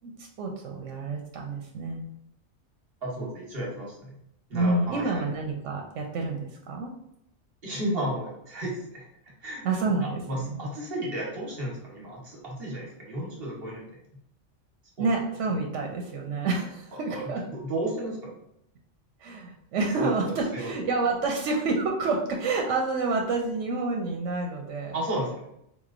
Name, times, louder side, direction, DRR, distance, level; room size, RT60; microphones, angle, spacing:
voice 1, 0.0-2.0 4.5-6.9 9.6-10.6 15.0-17.4 19.2-25.0, right 3 dB, 80° right, 2 dB, 0.9 m, -28 dB
voice 2, 3.0-4.2 4.5-5.3 7.6-9.1 9.4-9.6 10.3-13.9 15.0-15.1 17.1-18.4 20.0-20.1 20.5-20.7 24.9-25.5, right 1 dB, 55° right, -3 dB, 1.3 m, -33 dB
4.1 x 3.0 x 2.5 m, 0.77 s
omnidirectional pair, 1.2 m